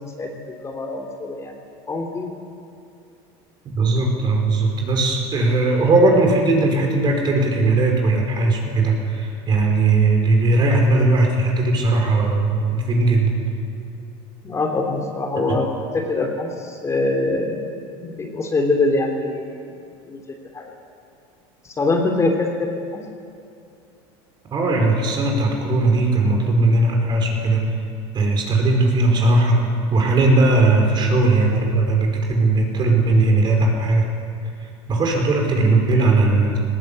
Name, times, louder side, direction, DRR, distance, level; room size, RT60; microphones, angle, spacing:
voice 1, 0.0-1.6 1.9-2.3 14.4-15.7 15.9-17.6 17.9-19.6 20.1-20.7 21.8-23.0, left 2 dB, 20° left, 2 dB, 2.8 m, -24 dB
voice 2, 3.7-13.3 15.4-15.6 24.5-27.6 28.1-29.6 29.9-34.1 34.9-36.6, right 2 dB, 35° right, 1 dB, 4.9 m, -18 dB
19.0 x 17.5 x 8.5 m, 2.5 s
supercardioid pair, 115°, 13 cm